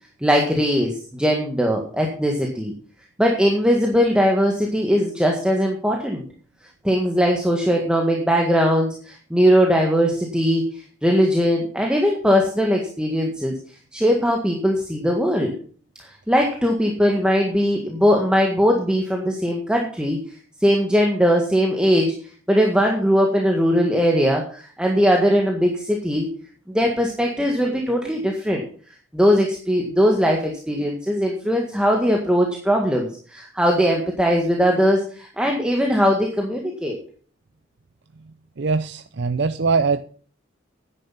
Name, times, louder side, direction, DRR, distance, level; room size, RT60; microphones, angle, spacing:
voice 1, 0.2-2.7 3.2-6.2 6.8-13.5 13.9-15.5 16.0-20.2 20.6-22.1 22.5-26.3 26.7-28.6 29.1-37.0, equal, 5° right, 0 dB, 1.7 m, -20 dB
voice 2, 38.6-40.0, right 4 dB, 65° right, 10 dB, 0.6 m, -22 dB
10.0 x 9.9 x 5.8 m, 0.43 s
head